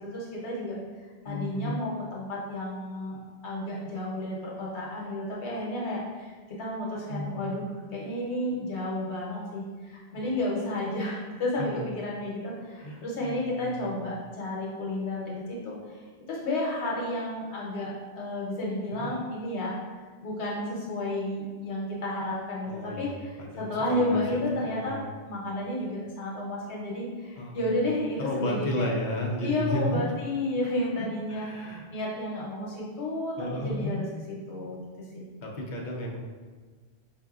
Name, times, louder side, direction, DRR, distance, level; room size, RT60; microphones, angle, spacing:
voice 1, 0.0-0.8 1.2-3.2 3.4-19.8 20.2-25.0 25.3-28.9 29.4-34.0 34.5-34.8 35.1-35.2, left 1 dB, 90° left, -4 dB, 1.0 m, -32 dB
voice 2, 1.2-1.8 6.8-7.6 10.1-10.2 11.6-11.8 12.7-13.9 18.9-19.2 22.7-24.2 24.6-25.1 27.4-27.7 28.2-30.0 31.0-31.9 33.4-34.0 35.4-36.2, left 1 dB, 50° left, -1 dB, 0.7 m, -34 dB
4.9 x 2.6 x 2.4 m, 1.4 s
omnidirectional pair, 1.1 m